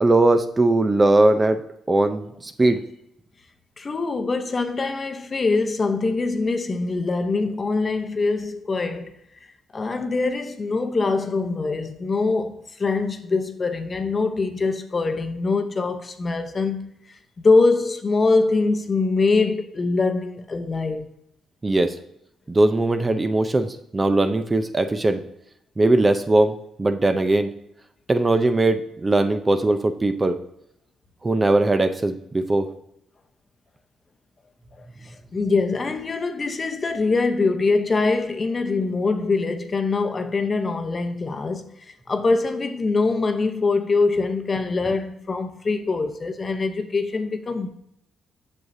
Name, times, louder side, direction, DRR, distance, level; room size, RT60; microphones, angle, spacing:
voice 1, 0.0-1.6 1.9-2.8 21.6-21.9 22.5-25.2 25.8-27.5 28.1-30.3 31.2-32.7, right 2 dB, 25° right, 0.6 m, -20 dB
voice 2, 3.8-9.1 9.7-16.9 17.4-21.1 34.8-47.7, left 3 dB, 35° left, 0.8 m, -23 dB
7.7 x 6.5 x 2.7 m
cardioid pair, 90°, 0 cm